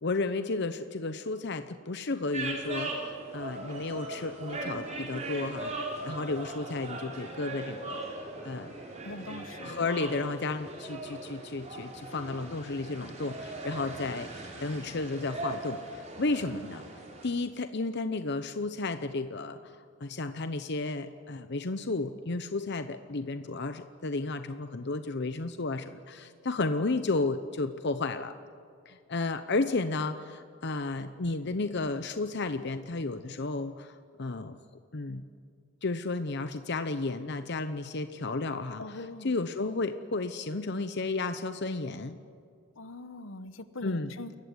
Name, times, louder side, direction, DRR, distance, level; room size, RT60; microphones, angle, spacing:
voice 1, 0.0-8.0 8.4-8.7 9.6-16.8 17.2-19.6 20.0-28.3 28.9-34.6 34.9-35.2 35.8-42.2 43.8-44.1, left 3 dB, 60° left, 10 dB, 0.9 m, -33 dB
sound 1, 2.3-17.3, right 2 dB, 35° right, 4.7 m, -39 dB
voice 2, 9.0-10.1 38.8-39.3 42.8-44.3, left 2 dB, 80° left, 12 dB, 1.2 m, -42 dB
28.0 x 15.5 x 9.6 m, 2.3 s
head